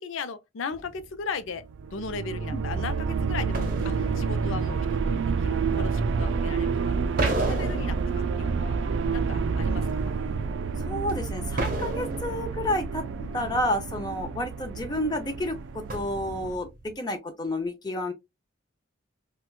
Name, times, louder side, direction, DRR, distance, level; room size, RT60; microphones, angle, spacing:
voice 1, 0.0-1.7 1.9-6.9 7.3-8.8 9.1-10.1 13.2-13.6, left 5 dB, 75° left, 0.5 m, -37 dB
sound 1, 0.7-1.3 3.5-5.3 7.2-9.1 9.8-9.9 11.1-11.2 11.6-13.1 15.3-15.4 15.9-16.9, right 2 dB, 45° right, 0.7 m, -33 dB
sound 2, 1.6-16.6, right 5 dB, 65° right, 0.3 m, -29 dB
voice 2, 2.5-2.8 10.8-13.0 13.3-18.1, left 1 dB, 20° left, 0.5 m, -30 dB
4.3 x 2.2 x 2.2 m
head